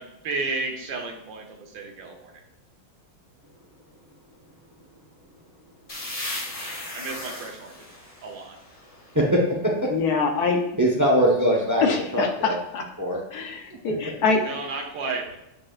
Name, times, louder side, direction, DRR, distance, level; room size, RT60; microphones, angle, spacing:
voice 1, 0.0-2.3 6.9-7.8 8.2-8.6 14.4-15.4, right 3 dB, 65° right, 2 dB, 1.7 m, -32 dB
sound 1, 5.9-9.5, left 1 dB, 30° left, 0.7 m, -37 dB
voice 2, 9.1-9.7 10.8-11.8 12.1-12.6 13.0-13.2, equal, 15° right, -2 dB, 0.6 m, -21 dB
voice 3, 9.9-10.6 11.8-12.8 13.3-14.4, left 4 dB, 60° left, 3 dB, 1.0 m, -24 dB
8.5 x 4.9 x 2.5 m, 0.86 s
omnidirectional pair, 2.3 m